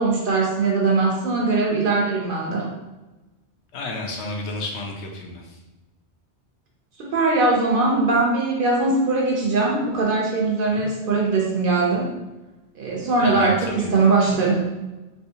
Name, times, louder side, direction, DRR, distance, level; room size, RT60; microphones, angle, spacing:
voice 1, 0.0-2.7 7.0-12.1 12.8-14.7, right 3 dB, 55° right, -1 dB, 0.7 m, -21 dB
voice 2, 3.7-5.6 10.7-10.9 13.2-13.9, left 2 dB, 70° left, 0 dB, 0.9 m, -32 dB
3.5 x 2.7 x 2.7 m, 1.1 s
omnidirectional pair, 1.2 m